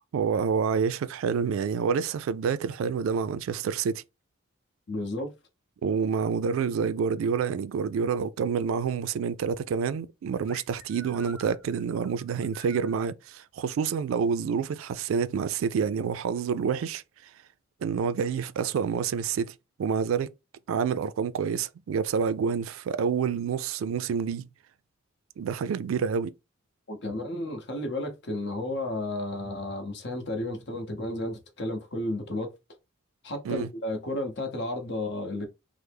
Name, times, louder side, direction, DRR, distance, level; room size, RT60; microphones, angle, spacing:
voice 1, 0.1-4.0 5.8-17.0 17.8-20.3 20.7-24.5 25.4-26.3 33.4-33.7, right 6 dB, 85° right, 0.3 m, -28 dB
voice 2, 4.9-5.3 26.9-32.5 33.2-35.5, left 1 dB, 55° left, 0.8 m, -32 dB
sound 1, 10.5-13.0, right 1 dB, 5° left, 0.8 m, -48 dB
3.2 x 2.0 x 3.3 m
head